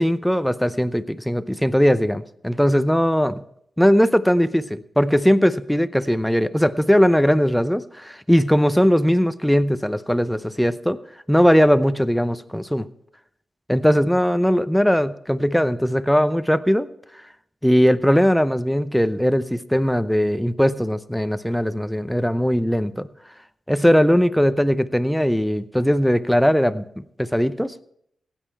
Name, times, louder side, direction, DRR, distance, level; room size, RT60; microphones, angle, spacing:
voice 1, 0.0-3.4 3.8-11.0 11.3-12.9 13.7-16.9 17.6-23.1 23.7-27.8, equal, 5° left, 13 dB, 0.7 m, -19 dB
15.5 x 9.1 x 4.4 m, 0.70 s
cardioid pair, 70°, 0 cm